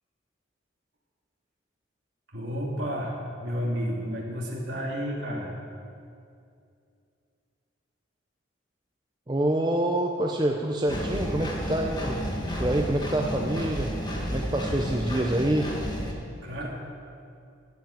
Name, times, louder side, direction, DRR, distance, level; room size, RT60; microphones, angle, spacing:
voice 1, 2.3-3.1 3.4-5.5 16.2-16.7, equal, 60° right, -3 dB, 2.8 m, -31 dB
voice 2, 9.3-12.2 12.6-13.9 14.3-15.7, right 1 dB, 20° right, 1 dB, 0.6 m, -26 dB
Engine, 10.9-16.1, equal, 20° left, 1.5 m, -31 dB
14.0 x 5.7 x 9.0 m, 2.4 s
head